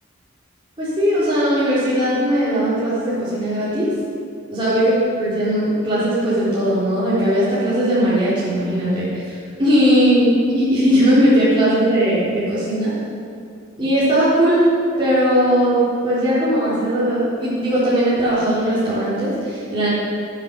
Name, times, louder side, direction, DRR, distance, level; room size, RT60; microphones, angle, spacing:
voice 1, 0.8-3.9 4.5-12.9 13.8-14.7 15.0-15.8 16.0-19.9, equal, 25° right, -12 dB, 4.0 m, -18 dB
19.0 x 8.3 x 5.3 m, 2.4 s
head